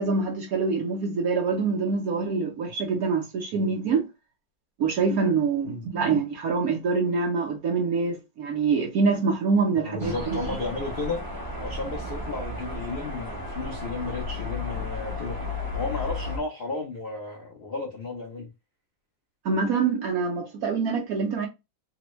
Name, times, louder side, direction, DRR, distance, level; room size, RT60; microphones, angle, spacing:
voice 1, 0.0-4.0 4.8-10.4 19.4-21.5, right 4 dB, 65° right, 0.9 m, -25 dB
voice 2, 9.7-11.2 11.6-15.4 15.7-18.5, left 3 dB, 80° left, 0.5 m, -33 dB
sound 1, 10.0-16.4, left 2 dB, 20° right, 0.5 m, -33 dB
3.3 x 2.1 x 3.0 m
omnidirectional pair, 2.1 m